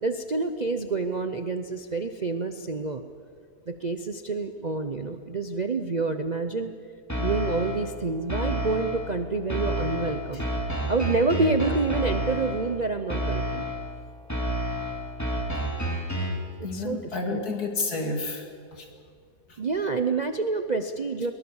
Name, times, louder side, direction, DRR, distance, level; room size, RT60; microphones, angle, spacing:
voice 1, 0.0-3.0 3.7-6.7 7.2-10.4 10.9-13.6 16.6-17.4 19.6-21.3, right 3 dB, 40° right, 7 dB, 0.6 m, -28 dB
sound 1, 7.1-7.9 8.3-9.1 9.5-12.7 13.1-13.9 14.3-16.5, equal, 10° left, 2.4 m, -29 dB
voice 2, 16.6-18.5 18.7-18.8 19.5-19.6, left 3 dB, 65° left, 3 dB, 3.1 m, -30 dB
22.0 x 20.5 x 7.1 m, 2.2 s
omnidirectional pair, 1.7 m